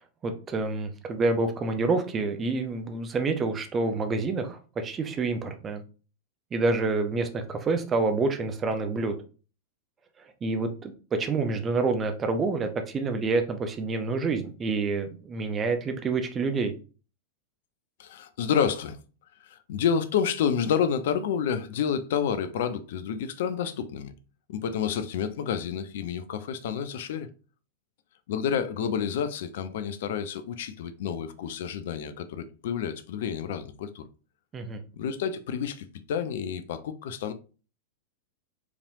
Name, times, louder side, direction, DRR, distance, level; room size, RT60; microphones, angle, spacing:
voice 1, 0.2-5.8 6.5-9.1 10.4-10.9 11.2-16.7 34.5-34.8, right 3 dB, 25° right, 0.7 m, -27 dB
voice 2, 18.0-19.0 19.4-24.1 24.5-27.3 28.3-34.0 34.9-37.3, left 7 dB, 55° left, 0.5 m, -29 dB
4.9 x 3.3 x 2.7 m
figure-of-eight pair, 90°, 0 cm